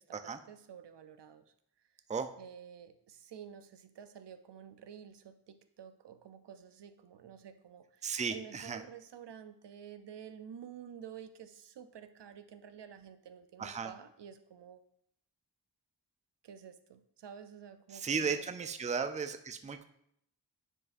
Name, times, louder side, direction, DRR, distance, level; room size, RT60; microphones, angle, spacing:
voice 1, 0.0-1.5 2.4-14.8 16.4-18.7, right 8 dB, 75° right, 11 dB, 0.5 m, -50 dB
voice 2, 8.0-8.8 13.6-13.9 17.9-19.9, right 5 dB, 20° right, 9 dB, 0.4 m, -35 dB
9.7 x 4.7 x 2.5 m, 0.72 s
wide cardioid pair, 70°, 42 cm